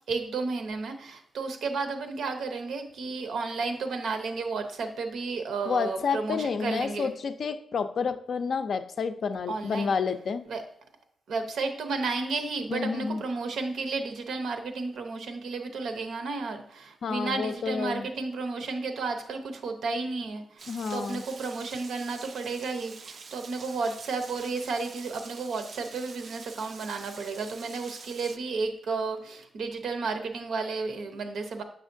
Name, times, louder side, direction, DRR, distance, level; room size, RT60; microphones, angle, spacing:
voice 1, 0.1-7.1 9.5-9.9 10.5-10.6 11.3-31.6, right 4 dB, 85° right, 6 dB, 0.8 m, -32 dB
voice 2, 5.7-10.4 12.7-13.2 17.0-18.1 20.7-21.2, left 5 dB, 60° left, 10 dB, 0.4 m, -30 dB
Rain, 20.6-28.4, right 5 dB, 50° right, 0.3 m, -46 dB
7.2 x 5.6 x 2.6 m, 0.66 s
wide cardioid pair, 140°, 0 cm